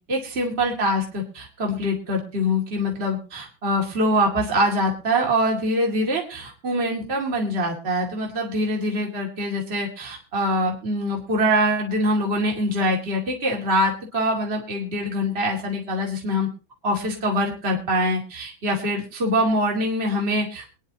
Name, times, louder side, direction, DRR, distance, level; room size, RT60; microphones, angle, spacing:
voice 1, 0.1-16.5 16.8-20.7, equal, 30° right, 0 dB, 2.5 m, -24 dB
24.5 x 10.0 x 2.8 m, 0.35 s
omnidirectional pair, 2.2 m